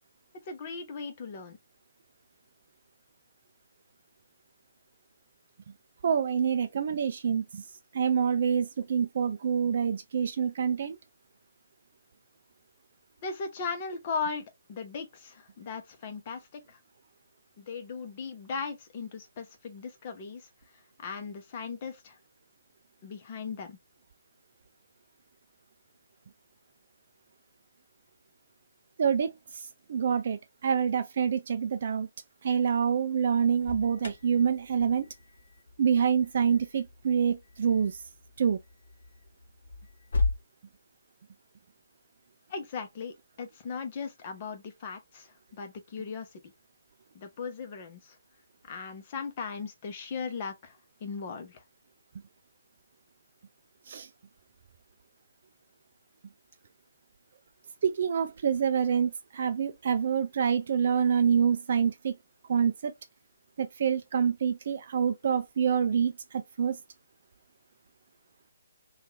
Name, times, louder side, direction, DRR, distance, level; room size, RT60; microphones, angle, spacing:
voice 1, 0.4-1.6 13.2-16.8 17.6-20.5 21.0-22.2 23.0-23.8 42.5-46.4 47.1-48.2 48.7-51.6, left 5 dB, 35° left, 0.8 m, -38 dB
voice 2, 6.0-7.6 7.9-11.0 29.0-32.1 32.4-35.1 35.8-38.0 38.4-38.6 53.9-54.1 57.8-62.1 62.5-62.9 63.6-66.8, right 7 dB, 45° right, 0.4 m, -27 dB
Alarm, 33.3-40.4, left 3 dB, 60° left, 1.2 m, -37 dB
2.8 x 2.4 x 3.1 m
figure-of-eight pair, 135°, 0 cm